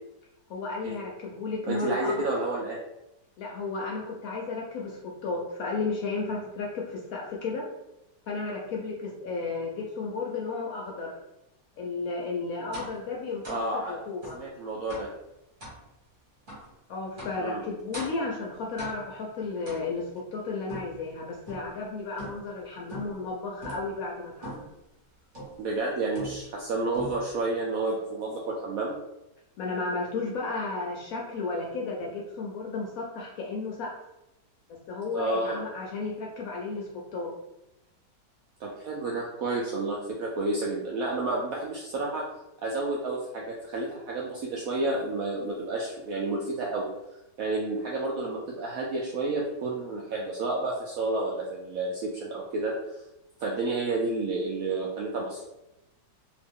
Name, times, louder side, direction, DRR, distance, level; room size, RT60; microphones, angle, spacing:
voice 1, 0.5-2.4 3.4-7.6 8.3-11.1 11.8-14.4 16.9-24.7 29.6-33.9 34.9-37.3, left 3 dB, 70° left, -2 dB, 0.8 m, -33 dB
voice 2, 1.7-2.8 13.5-14.0 14.3-15.1 17.4-17.6 25.6-29.0 35.1-35.6 38.6-42.2 42.6-46.9 47.4-52.7 53.4-55.4, right 2 dB, 75° right, -3 dB, 0.8 m, -30 dB
sound 1, 12.7-13.0 13.4-13.7 14.2-14.4 14.9-15.2 15.6-15.8 16.5-16.7 17.2-17.5 17.9-18.3 18.8-19.2 19.6-20.2 20.7-21.8 22.2-22.6 22.9-23.3 23.6-23.9 24.4-24.8 25.3-25.7 26.1-26.6 26.9-27.4, right 1 dB, 30° right, 1.1 m, -42 dB
2.8 x 2.5 x 3.5 m, 0.92 s
omnidirectional pair, 1.9 m